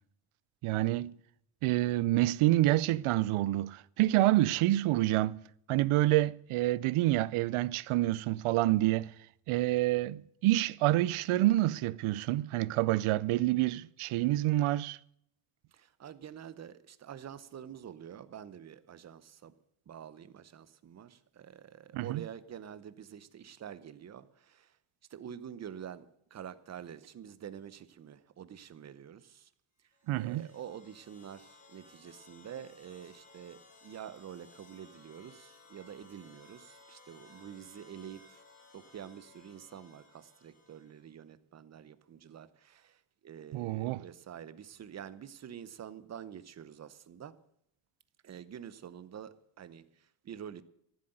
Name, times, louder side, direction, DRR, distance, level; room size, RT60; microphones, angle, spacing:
voice 1, 0.6-1.1 1.6-5.4 5.7-9.1 9.5-15.0 21.9-22.2 30.1-30.5 43.5-44.0, right 16 dB, 75° right, 0.6 m, -27 dB
voice 2, 15.7-19.5 19.9-24.8 25.1-29.5 30.2-38.4 38.7-47.4 48.2-50.6, right 9 dB, 30° right, 0.8 m, -47 dB
sound 1, 29.9-41.2, left 3 dB, 15° left, 2.6 m, -59 dB
14.5 x 7.9 x 8.9 m
cardioid pair, 170°, 50 cm